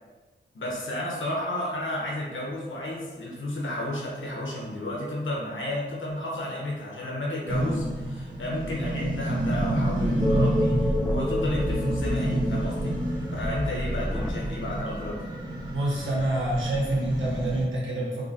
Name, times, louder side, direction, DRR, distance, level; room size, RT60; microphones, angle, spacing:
voice 1, 0.5-13.0 13.3-15.3, left 1 dB, 90° left, -3 dB, 0.9 m, -32 dB
sound 1, 7.5-17.6, right 1 dB, 25° right, 1.2 m, -29 dB
sound 2, 10.2-15.2, left 1 dB, ahead, 0.3 m, -30 dB
voice 2, 15.7-18.3, right 1 dB, 90° right, -5 dB, 1.0 m, -27 dB
3.8 x 2.2 x 3.9 m, 1.3 s
wide cardioid pair, 60°, 20 cm